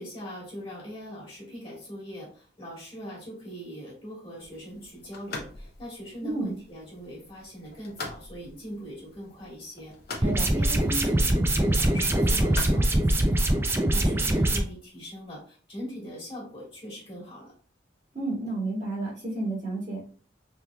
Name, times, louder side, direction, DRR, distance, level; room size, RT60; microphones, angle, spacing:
voice 1, 0.0-17.5, equal, 30° left, -5 dB, 1.6 m, -41 dB
sound 1, 4.4-14.3, left 3 dB, 55° left, 0.7 m, -44 dB
voice 2, 6.2-6.5 10.2-10.5 18.1-20.0, right 2 dB, 40° right, -4 dB, 1.5 m, -31 dB
sound 2, 10.2-14.6, right 1 dB, 15° right, 0.3 m, -23 dB
3.5 x 2.9 x 2.3 m, 0.43 s
head